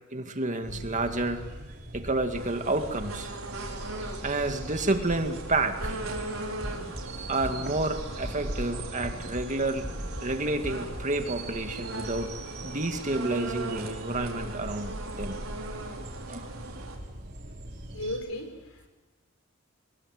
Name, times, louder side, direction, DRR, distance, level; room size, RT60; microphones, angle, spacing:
voice 1, 0.1-1.4 1.9-3.3 4.2-6.0 7.3-9.9 10.2-12.3 12.6-15.4 16.3-16.5, right 2 dB, 40° right, 6 dB, 2.2 m, -30 dB
sound 1, 0.6-18.2, right 1 dB, 55° right, 4.3 m, -40 dB
sound 2, 2.3-17.0, right 3 dB, 85° right, 4.8 m, -40 dB
sound 3, 5.8-6.2 6.6-7.0 7.4-7.8 8.2-8.7 9.0-9.5 9.8-10.3 10.6-11.1, left 1 dB, 20° left, 1.0 m, -40 dB
voice 2, 17.9-18.9, left 1 dB, 85° left, 6 dB, 4.9 m, -35 dB
24.0 x 20.5 x 7.9 m, 1.2 s
head